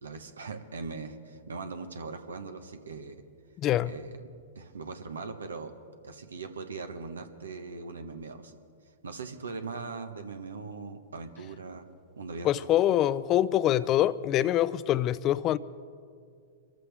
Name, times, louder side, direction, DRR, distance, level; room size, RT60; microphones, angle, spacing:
voice 1, 0.0-3.2 3.8-4.1 4.5-5.7 6.0-8.6 9.0-11.8 12.2-12.5, right 4 dB, 85° right, 1.2 m, -40 dB
voice 2, 3.6-3.9 12.4-15.6, left 12 dB, 35° left, 0.5 m, -25 dB
24.5 x 14.0 x 3.5 m
hypercardioid pair, 115°, 0 cm